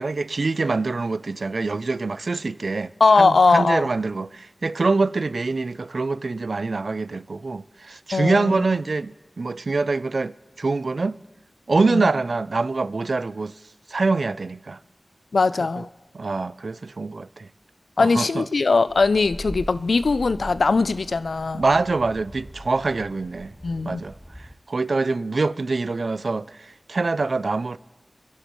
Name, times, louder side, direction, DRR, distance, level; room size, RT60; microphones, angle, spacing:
voice 1, 0.0-11.2 11.7-13.5 13.9-14.8 15.8-15.9 16.1-17.5 18.0-18.4 21.5-23.5 23.8-24.1 24.7-27.8, right 3 dB, 75° right, 0.4 m, -25 dB
voice 2, 3.0-3.9 8.1-8.6 11.9-12.1 15.3-15.9 18.0-21.6 23.6-24.0, left 4 dB, 85° left, 0.4 m, -20 dB
sound 1, 18.9-24.5, equal, ahead, 0.8 m, -41 dB
27.5 x 11.0 x 3.1 m
cardioid pair, 40°, 0 cm